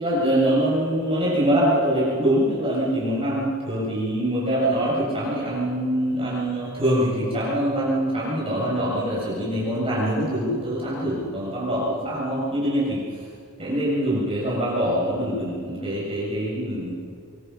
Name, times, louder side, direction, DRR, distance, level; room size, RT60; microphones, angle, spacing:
voice 1, 0.0-13.0 13.6-16.9, right 1 dB, 25° right, -7 dB, 7.4 m, -24 dB
25.5 x 23.5 x 5.9 m, 2.2 s
head